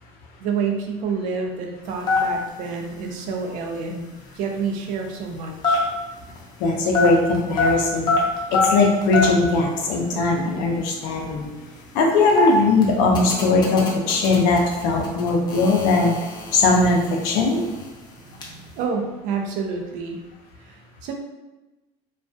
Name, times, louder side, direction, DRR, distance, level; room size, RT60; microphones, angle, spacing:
voice 1, 0.4-4.1 4.3-5.9 18.2-20.2 20.6-21.1, right 5 dB, 65° right, 3 dB, 0.4 m, -28 dB
sound 1, 1.9-6.6 6.9-9.5 9.8-9.9 10.0-10.4 10.9-18.5, left 3 dB, 30° left, 0.5 m, -25 dB
voice 2, 6.6-8.2 8.5-11.5 11.9-16.2 16.5-17.6, left 3 dB, 80° left, 0 dB, 0.5 m, -20 dB
2.3 x 2.2 x 2.5 m, 1.1 s
cardioid pair, 120°, 14 cm